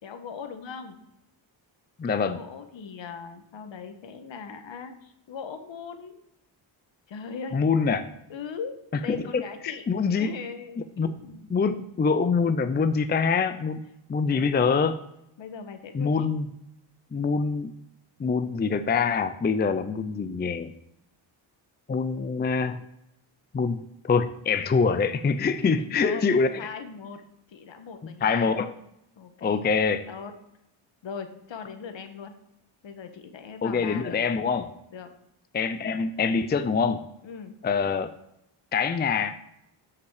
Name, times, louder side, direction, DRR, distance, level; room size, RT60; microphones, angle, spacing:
voice 1, 0.0-1.0 2.1-6.2 7.1-7.6 8.3-8.7 9.0-9.8 10.1-11.5 14.2-14.8 15.4-16.3 25.5-27.2 27.5-28.6 29.2-29.7 30.1-30.3 31.0-32.3 32.8-34.2 34.9-35.1 37.2-37.5, left 6 dB, 65° left, 8 dB, 1.6 m, -40 dB
voice 2, 2.0-2.4 7.5-8.1 9.1-10.3 11.0-11.2 11.5-15.0 15.9-16.5 17.1-17.7 18.2-20.7 21.9-22.8 23.5-26.6 28.2-28.7 29.4-30.1 33.6-34.7 35.5-37.0 37.6-38.1 38.7-39.4, left 5 dB, 20° left, 10 dB, 0.5 m, -25 dB
13.0 x 5.8 x 4.8 m, 0.82 s
cardioid pair, 115°, 48 cm